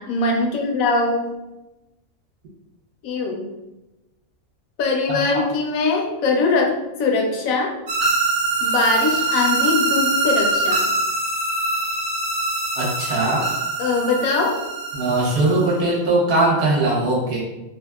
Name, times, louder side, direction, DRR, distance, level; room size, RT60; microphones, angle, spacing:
voice 1, 0.0-1.3 3.0-3.4 4.8-7.7 8.6-10.8 13.8-14.6, left 3 dB, 80° left, 1 dB, 1.0 m, -21 dB
voice 2, 5.1-5.4 12.8-13.5 14.9-17.4, right 2 dB, 50° right, -4 dB, 0.9 m, -20 dB
sound 1, 7.9-15.9, right 3 dB, 85° right, 1.1 m, -23 dB
2.7 x 2.4 x 2.2 m, 1.0 s
omnidirectional pair, 1.4 m